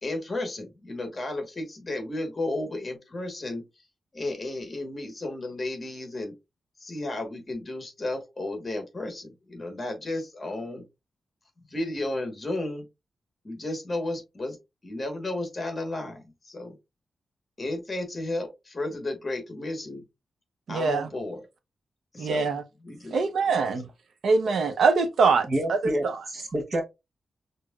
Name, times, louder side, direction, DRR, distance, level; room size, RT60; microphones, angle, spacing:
voice 1, 0.0-3.6 4.1-6.3 6.8-10.8 11.7-12.8 13.4-14.6 14.8-16.8 17.6-20.0 20.7-21.4 22.1-22.5 22.8-23.1, left 2 dB, 25° left, 1.4 m, -33 dB
voice 2, 20.7-21.1 22.2-22.6 23.1-23.9 24.2-26.2, right 4 dB, 70° right, 0.7 m, -23 dB
voice 3, 25.5-26.8, right 1 dB, 40° right, 1.1 m, -28 dB
5.9 x 2.6 x 2.4 m
wide cardioid pair, 165°, 0 cm